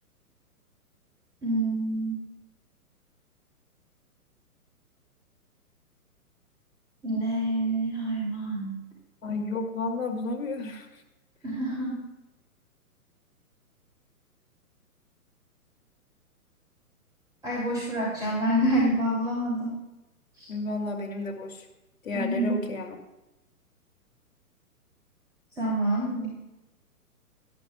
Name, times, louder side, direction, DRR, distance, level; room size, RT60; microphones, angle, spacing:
voice 1, 1.4-2.2 7.0-8.8 11.4-12.0 17.4-19.8 20.4-20.5 22.1-22.6 25.6-26.3, right 1 dB, 10° right, -6 dB, 2.9 m, -27 dB
voice 2, 9.2-10.9 20.5-21.7 22.0-23.0, left 3 dB, 60° left, 2 dB, 2.3 m, -32 dB
17.5 x 12.0 x 2.2 m, 0.97 s
figure-of-eight pair, 120°, 45 cm